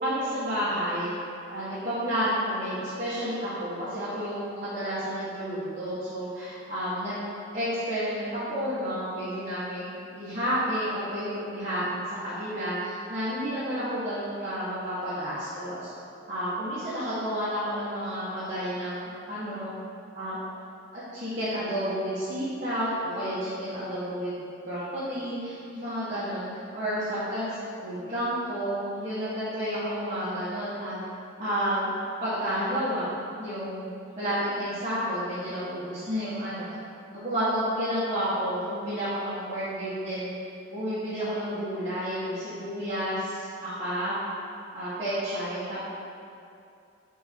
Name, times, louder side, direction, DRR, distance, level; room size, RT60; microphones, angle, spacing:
voice 1, 0.0-1.1 1.5-7.1 7.5-15.9 16.3-19.7 20.1-20.4 20.9-24.4 24.7-31.0 31.4-31.9 32.2-33.1 33.4-33.9 34.2-36.7 37.1-40.3 40.7-44.2 44.7-45.8, equal, 35° right, -14 dB, 1.4 m, -31 dB
5.4 x 4.1 x 4.4 m, 2.6 s
head